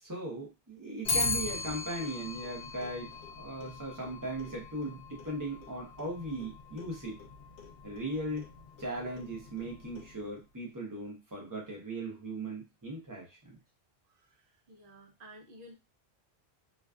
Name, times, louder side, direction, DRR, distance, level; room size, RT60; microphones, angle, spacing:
voice 1, 0.0-7.2 7.8-8.4 8.8-13.6, right 1 dB, 20° right, -2 dB, 0.8 m, -38 dB
Clock, 1.0-10.4, left 3 dB, 90° left, 0.9 m, -39 dB
voice 2, 14.1-15.7, equal, 55° right, 0 dB, 0.8 m, -53 dB
2.5 x 2.3 x 2.3 m, 0.26 s
omnidirectional pair, 1.1 m